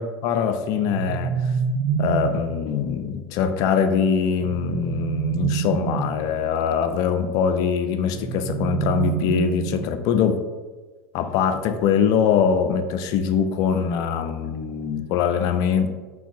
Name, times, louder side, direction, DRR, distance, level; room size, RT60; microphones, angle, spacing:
voice 1, 0.0-1.5 2.0-10.4 11.1-15.9, left 7 dB, 55° left, 7 dB, 0.4 m, -23 dB
sound 1, 0.7-2.6 4.4-6.3 8.1-10.0, right 7 dB, 70° right, 0.4 m, -26 dB
2.7 x 2.4 x 3.9 m, 1.3 s
hypercardioid pair, 90°, 8 cm